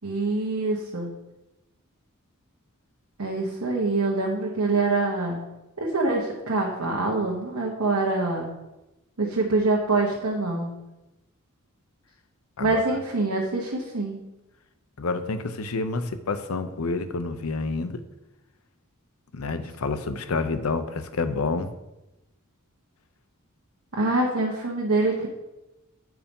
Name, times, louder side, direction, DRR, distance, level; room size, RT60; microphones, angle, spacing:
voice 1, 0.0-1.1 3.2-5.4 5.8-8.5 9.2-10.7 12.6-14.2 23.9-25.3, right 2 dB, 85° right, -3 dB, 1.2 m, -25 dB
voice 2, 15.0-18.0 19.3-21.7, left 3 dB, 75° left, 10 dB, 0.6 m, -28 dB
8.7 x 4.7 x 5.3 m, 0.98 s
head